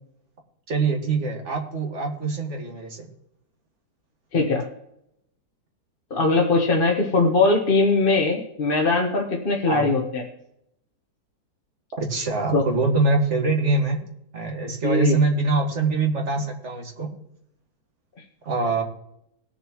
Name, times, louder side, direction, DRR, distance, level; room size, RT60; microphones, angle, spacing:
voice 1, 0.7-3.1 9.7-9.9 12.0-14.0 14.3-17.1 18.5-18.8, right 3 dB, 45° right, 1 dB, 2.0 m, -24 dB
voice 2, 4.3-4.6 6.1-10.2 12.5-12.6 14.8-15.2, left 3 dB, 35° left, 0 dB, 1.2 m, -21 dB
19.0 x 7.0 x 3.0 m, 0.76 s
omnidirectional pair, 1.7 m